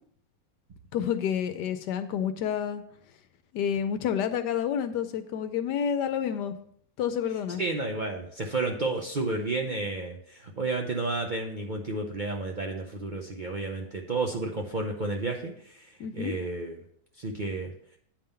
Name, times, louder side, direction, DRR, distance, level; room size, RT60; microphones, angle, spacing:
voice 1, 0.9-2.8 3.5-6.5 7.0-7.6 16.0-16.3, left 8 dB, 75° left, 10 dB, 1.2 m, -29 dB
voice 2, 7.6-16.8 17.2-17.7, right 3 dB, 70° right, 1 dB, 0.4 m, -31 dB
9.4 x 3.7 x 6.7 m, 0.67 s
omnidirectional pair, 1.9 m